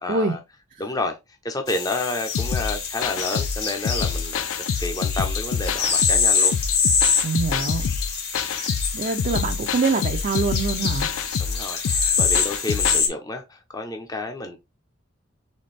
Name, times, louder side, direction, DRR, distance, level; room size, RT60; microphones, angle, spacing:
voice 1, 0.0-0.4 0.8-1.2 1.4-4.4 4.8-6.5 11.4-14.6, left 2 dB, 20° left, 0.6 m, -30 dB
sound 1, 1.7-13.1, left 5 dB, 55° left, 1.4 m, -25 dB
sound 2, 2.3-13.0, left 6 dB, 85° left, 0.4 m, -27 dB
voice 2, 7.2-7.9 8.9-11.1, right 4 dB, 40° right, 0.5 m, -24 dB
4.3 x 3.3 x 3.2 m
head